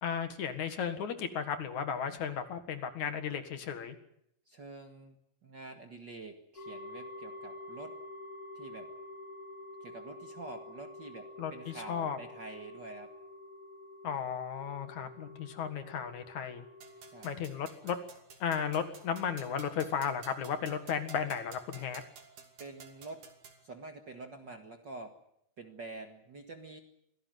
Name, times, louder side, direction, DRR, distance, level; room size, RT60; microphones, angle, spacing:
voice 1, 0.0-4.0 11.4-12.2 14.0-16.6 17.2-18.0 18.4-22.0, left 7 dB, 65° left, 9 dB, 3.0 m, -35 dB
voice 2, 4.5-8.0 8.5-8.9 9.8-13.1 17.1-17.4 22.6-23.2 23.6-25.1 25.6-26.8, right 3 dB, 40° right, 4 dB, 2.0 m, -47 dB
sound 1, 6.6-17.3, left 1 dB, 45° left, 8.7 m, -48 dB
sound 2, 16.8-23.6, right 6 dB, 65° right, 4.1 m, -53 dB
25.5 x 17.0 x 9.3 m, 0.75 s
omnidirectional pair, 3.7 m